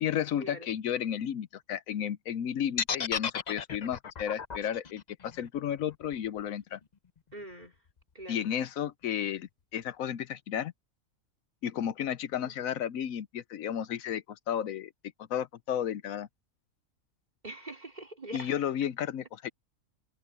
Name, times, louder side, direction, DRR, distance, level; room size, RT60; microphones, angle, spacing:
voice 1, 0.0-6.8 8.3-10.7 11.6-14.9 15.3-16.3 18.3-19.5, left 9 dB, 75° left, 1.1 m, -33 dB
sound 1, 2.8-6.8, left 6 dB, 40° left, 0.7 m, -34 dB
voice 2, 7.3-7.7 8.2-8.4 12.4-12.5 17.4-18.5, right 1 dB, 30° right, 3.7 m, -43 dB
omnidirectional pair, 1.5 m